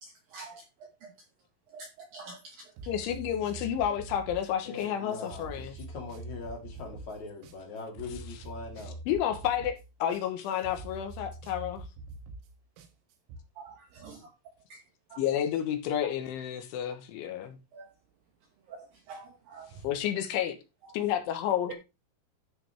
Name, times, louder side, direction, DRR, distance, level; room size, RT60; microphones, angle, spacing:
voice 1, 0.3-1.1 1.7-2.9 13.6-14.3 14.7-14.8 15.1-15.2 17.7-17.9 18.7-19.9 20.8-21.0, right 4 dB, 70° right, 2.3 m, -47 dB
sound 1, 2.8-13.4, right 2 dB, 90° right, 4.1 m, -45 dB
voice 2, 2.9-5.7 9.1-11.8 15.2-17.6 19.8-20.6 20.9-21.7, left 10 dB, 80° left, 3.5 m, -30 dB
voice 3, 4.6-8.9, left 3 dB, 45° left, 3.3 m, -41 dB
13.0 x 6.0 x 3.5 m
omnidirectional pair, 5.7 m